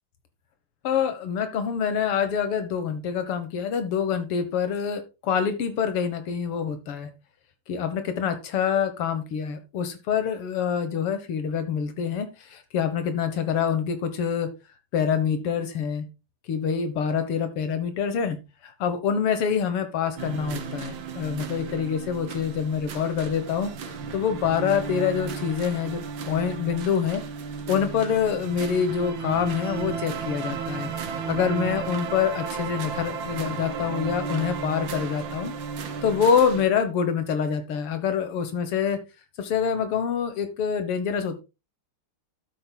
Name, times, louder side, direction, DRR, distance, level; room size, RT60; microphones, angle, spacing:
voice 1, 0.8-7.1 7.7-14.5 14.9-16.1 16.5-18.4 18.6-26.0 26.3-27.2 27.7-35.5 36.0-39.0 39.4-41.4, left 7 dB, 85° left, 9 dB, 2.2 m, -26 dB
sound 1, 20.2-36.7, right 6 dB, 60° right, 2.0 m, -34 dB
12.5 x 8.6 x 2.3 m, 0.27 s
omnidirectional pair, 2.4 m